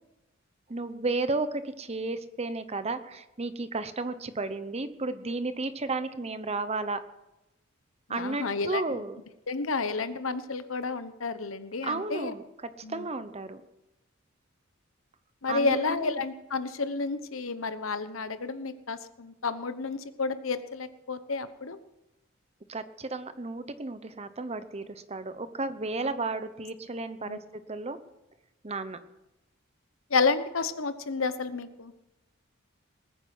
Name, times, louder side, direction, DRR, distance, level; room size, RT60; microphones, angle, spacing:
voice 1, 0.7-7.0 8.1-9.2 11.8-12.4 12.9-13.6 15.5-16.2 22.7-28.0 28.6-29.0, right 3 dB, 30° right, 12 dB, 0.9 m, -33 dB
voice 2, 8.1-8.8 9.5-12.3 12.8-13.1 15.4-21.8 27.3-27.4 30.1-31.9, left 4 dB, 90° left, 12 dB, 1.1 m, -30 dB
20.0 x 9.3 x 6.1 m, 0.93 s
head